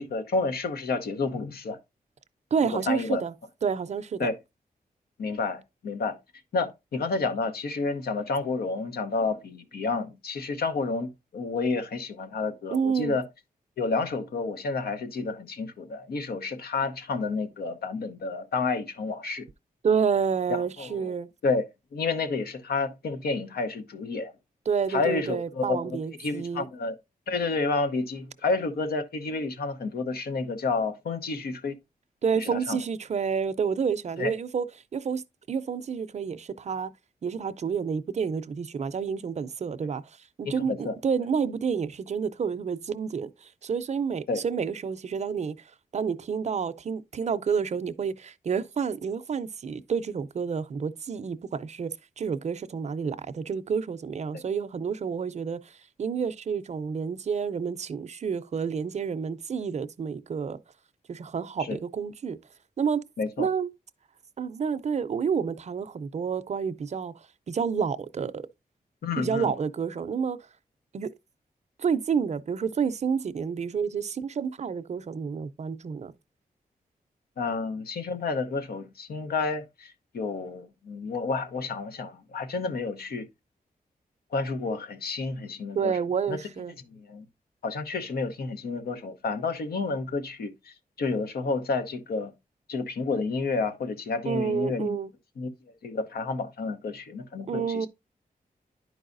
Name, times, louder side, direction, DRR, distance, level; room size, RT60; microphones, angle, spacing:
voice 1, 0.0-1.8 2.6-3.2 4.2-4.3 5.2-6.2 6.5-13.2 13.8-19.5 20.5-21.1 21.4-21.6 21.9-24.3 24.9-27.0 27.3-31.8 32.4-32.8 34.2-34.3 40.6-41.0 44.3-44.4 54.3-54.4 61.7-61.8 63.2-63.5 69.0-69.5 77.4-83.3 84.3-85.9 86.3-86.4 86.9-87.2 87.6-92.3 92.7-95.0 95.4-95.5 95.8-97.9, left 4 dB, 90° left, 0.9 m, -30 dB
voice 2, 2.5-3.3 3.6-4.3 12.7-13.2 19.8-21.3 24.7-26.7 32.2-34.7 34.9-35.2 35.5-36.9 37.2-40.0 40.4-45.6 45.9-60.6 61.1-62.4 62.8-63.0 63.4-63.7 64.4-67.1 67.5-68.4 69.2-70.4 70.9-71.1 71.8-76.1 85.7-86.7 94.3-95.1 97.5-97.9, right 6 dB, 50° right, 0.5 m, -29 dB
10.5 x 4.7 x 2.5 m
wide cardioid pair, 95°, 15 cm